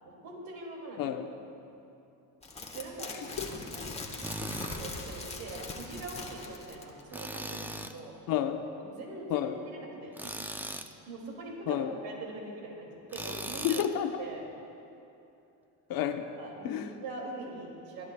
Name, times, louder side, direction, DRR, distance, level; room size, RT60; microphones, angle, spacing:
voice 1, 0.0-1.0 2.7-3.4 3.7-4.0 4.6-8.1 8.8-10.3 11.1-13.8 14.2-14.5 16.4-16.8 17.0-18.1, right 2 dB, 70° right, -1 dB, 2.5 m, -43 dB
voice 2, 1.0-1.3 3.4-3.5 4.5-4.6 8.3-8.6 9.3-9.6 11.7-11.9 13.6-14.2 15.9-16.2 16.6-16.9, left 10 dB, 65° left, 7 dB, 0.9 m, -30 dB
sound 1, 2.4-7.0 7.3-7.4, left 3 dB, 15° left, 1.2 m, -41 dB
Tools, 4.2-4.8 7.1-8.0 10.1-10.9 13.1-13.9, right 1 dB, 5° right, 0.3 m, -38 dB
20.5 x 12.5 x 2.3 m, 2.8 s
cardioid pair, 105°, 37 cm